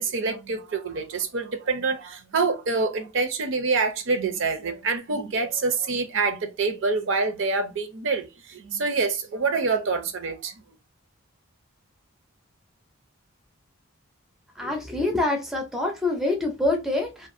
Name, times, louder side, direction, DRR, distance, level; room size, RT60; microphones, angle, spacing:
voice 1, 0.0-10.5, right 4 dB, 60° right, 0.5 m, -26 dB
voice 2, 14.6-17.3, left 2 dB, ahead, 0.4 m, -26 dB
2.5 x 2.3 x 2.5 m
head